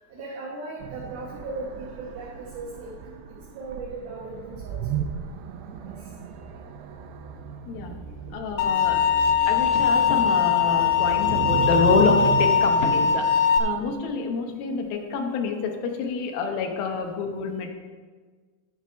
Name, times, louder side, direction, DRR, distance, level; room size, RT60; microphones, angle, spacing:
voice 1, 0.1-2.9 3.5-5.0 5.8-5.9, right 3 dB, 70° right, -4 dB, 2.9 m, -37 dB
sound 1, 0.8-14.0, right 8 dB, 85° right, 2.9 m, -34 dB
voice 2, 8.3-9.0 9.5-13.2 13.6-17.7, left 5 dB, 70° left, 3 dB, 2.6 m, -27 dB
sound 2, 8.6-13.6, left 7 dB, 90° left, 3.0 m, -21 dB
11.5 x 6.1 x 5.2 m, 1.5 s
omnidirectional pair, 4.9 m